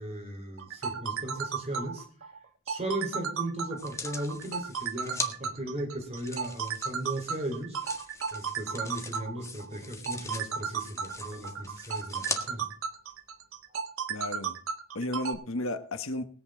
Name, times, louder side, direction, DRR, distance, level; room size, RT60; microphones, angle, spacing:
voice 1, 0.0-2.0 2.7-7.8 8.3-12.7, right 1 dB, 30° right, 2 dB, 4.1 m, -37 dB
sound 1, 0.6-15.3, right 6 dB, 70° right, 1.3 m, -34 dB
sound 2, 3.8-5.3 6.2-12.4 13.1-13.2, left 3 dB, 15° left, 1.6 m, -41 dB
voice 2, 14.1-14.6 14.9-16.3, left 1 dB, 70° left, 9 dB, 1.4 m, -33 dB
20.5 x 8.1 x 3.8 m, 0.44 s
head